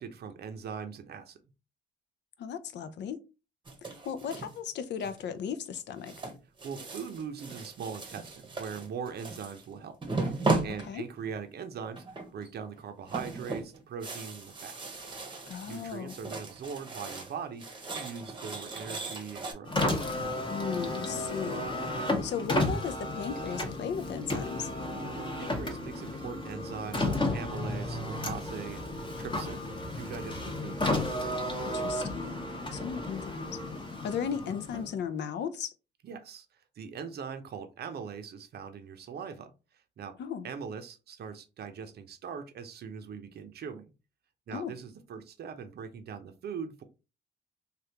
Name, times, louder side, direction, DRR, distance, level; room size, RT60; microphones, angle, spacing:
voice 1, 0.0-1.4 6.6-10.0 10.3-12.0 12.3-15.0 15.7-19.7 25.1-29.6 29.9-30.8 36.0-36.5 36.8-39.5 40.0-40.1 40.4-43.8 44.5-46.8, right 6 dB, 55° right, 0.6 m, -41 dB
voice 2, 2.4-3.2 3.8-6.1 10.8-11.0 15.5-16.1 20.5-21.7 22.0-24.7 31.6-32.4 32.7-33.6 34.0-35.7 40.2-40.5 44.5-44.7, left 7 dB, 65° left, 0.5 m, -36 dB
sound 1, 3.6-4.6 5.0-5.4 6.0-9.7 10.0-11.4 11.9-12.5 12.8-17.3 17.6-19.5, right 3 dB, 25° right, 0.9 m, -36 dB
Car, 19.6-35.0, left 1 dB, 25° left, 0.9 m, -33 dB
3.4 x 2.3 x 2.8 m
cardioid pair, 90°, 20 cm